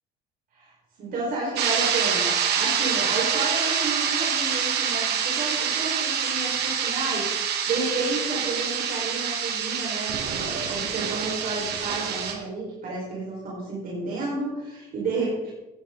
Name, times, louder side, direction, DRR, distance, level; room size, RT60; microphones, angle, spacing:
voice 1, 1.0-15.5, right 3 dB, 60° right, -4 dB, 5.0 m, -31 dB
sound 1, 1.6-12.3, right 7 dB, 75° right, 1.9 m, -26 dB
15.5 x 10.0 x 4.0 m, 1.0 s
cardioid pair, 110°, 17 cm